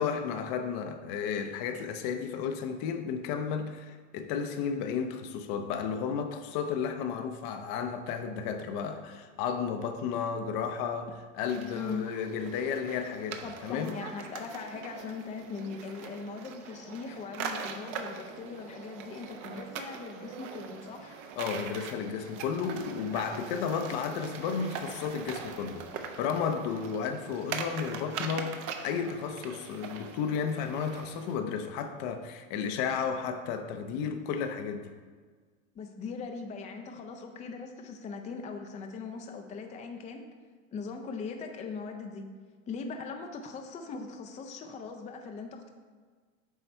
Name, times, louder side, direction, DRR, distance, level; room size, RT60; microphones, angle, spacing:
voice 1, 0.0-13.9 21.4-25.9 26.2-34.9, left 6 dB, 50° left, 7 dB, 0.7 m, -33 dB
sound 1, 11.5-31.4, right 6 dB, 50° right, 0.8 m, -42 dB
voice 2, 11.7-12.2 13.4-21.2 35.7-40.2 40.7-42.2 42.7-45.7, left 4 dB, 20° left, 4 dB, 0.5 m, -40 dB
8.2 x 3.2 x 4.4 m, 1.5 s
hypercardioid pair, 110°, 40 cm